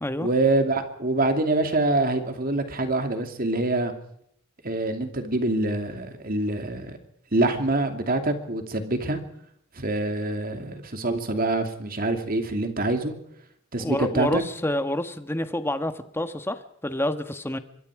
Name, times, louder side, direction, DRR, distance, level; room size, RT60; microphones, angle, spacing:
voice 1, 0.2-3.9 4.6-7.0 7.3-9.2 9.8-13.1 13.7-14.4, right 2 dB, 45° right, 6 dB, 2.7 m, -25 dB
voice 2, 13.8-17.6, left 1 dB, 10° left, 9 dB, 1.4 m, -28 dB
25.0 x 22.5 x 4.9 m, 0.71 s
head